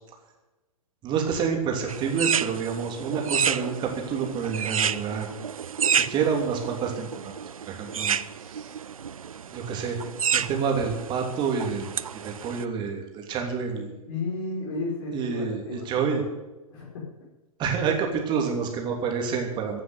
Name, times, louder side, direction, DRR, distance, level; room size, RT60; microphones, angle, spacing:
voice 1, 1.0-5.3 5.9-7.3 7.7-8.7 9.5-10.0 10.3-11.9 12.2-13.9 15.1-16.2 17.6-19.8, right 6 dB, 25° right, 2 dB, 3.1 m, -28 dB
sound 1, 1.9-12.6, right 7 dB, 70° right, 0.6 m, -30 dB
voice 2, 14.1-15.9 16.7-17.1, left 3 dB, 40° left, -2 dB, 5.5 m, -32 dB
15.5 x 7.7 x 9.5 m, 1.1 s
figure-of-eight pair, 110°, 19 cm